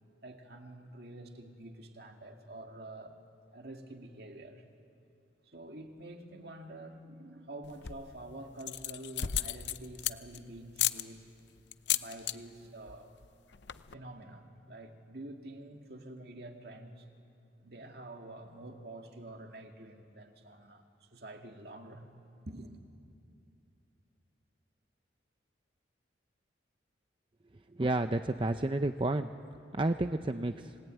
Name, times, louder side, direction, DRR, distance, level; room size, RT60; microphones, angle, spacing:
voice 1, 0.2-3.2 3.5-4.6 5.5-11.2 11.9-13.1 13.9-17.1 17.6-22.1 22.5-22.8, right 1 dB, 55° right, 3 dB, 2.3 m, -47 dB
sound 1, 7.6-8.1 8.6-10.4 10.8-11.0 11.7-12.4 12.6-13.0 13.2-13.3 13.5-13.9, left 11 dB, 70° left, 0.7 m, -33 dB
voice 2, 27.7-29.3 29.7-30.8, right 2 dB, 25° right, 8 dB, 0.6 m, -31 dB
30.0 x 20.5 x 9.2 m, 2.6 s
head